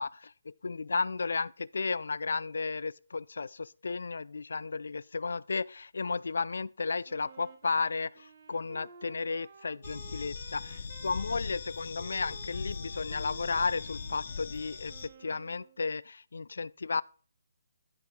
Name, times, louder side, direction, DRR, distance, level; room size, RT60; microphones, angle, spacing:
voice 1, 0.0-17.0, left 4 dB, 65° left, 0.3 m, -34 dB
Wind instrument woodwind instrument, 7.0-15.9, right 6 dB, 25° right, 1.2 m, -54 dB
sound 1, 9.8-15.1, left 5 dB, 35° left, 0.7 m, -40 dB
13.0 x 4.7 x 5.3 m
hypercardioid pair, 180°, 0 cm